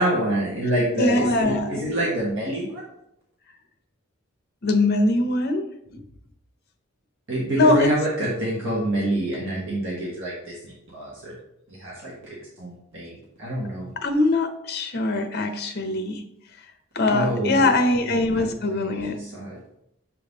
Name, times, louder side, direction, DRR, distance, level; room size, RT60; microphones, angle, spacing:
voice 1, 0.0-2.8 7.3-11.3 11.8-13.9 17.1-17.7 18.3-19.6, right 1 dB, 65° right, -5 dB, 1.4 m, -27 dB
voice 2, 0.6-1.9 4.6-5.6 5.9-6.0 7.5-8.0 14.0-16.2 16.9-19.2, left 2 dB, 50° left, 7 dB, 0.7 m, -22 dB
6.7 x 3.6 x 4.0 m, 0.78 s
head